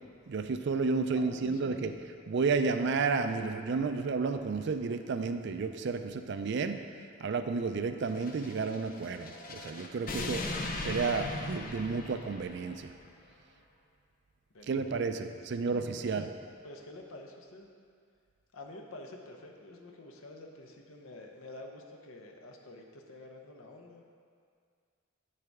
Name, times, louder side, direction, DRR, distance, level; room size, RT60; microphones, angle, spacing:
voice 1, 0.3-1.9 2.3-6.8 7.2-10.4 10.8-12.9 14.7-16.3, right 4 dB, 55° right, 8 dB, 0.4 m, -31 dB
voice 2, 1.1-1.8 14.5-16.3 16.6-17.7 18.5-24.1, left 2 dB, 85° left, 2 dB, 0.8 m, -49 dB
sound 1, 8.1-12.9, left 2 dB, 45° left, 0.6 m, -39 dB
8.7 x 6.6 x 3.5 m, 2.2 s
head